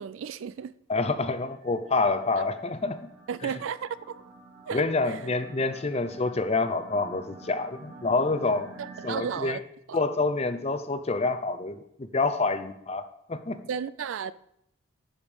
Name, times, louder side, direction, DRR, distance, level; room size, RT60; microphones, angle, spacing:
voice 1, 0.0-0.7 3.3-4.2 4.7-5.2 8.8-9.6 9.9-10.0 13.7-14.3, right 7 dB, 60° right, 0.3 m, -34 dB
voice 2, 0.9-3.1 3.4-3.5 4.7-8.7 9.0-9.6 9.9-13.6, left 3 dB, 30° left, 0.6 m, -27 dB
sound 1, 1.4-9.4, right 4 dB, 90° right, 2.6 m, -49 dB
12.0 x 5.1 x 5.4 m
head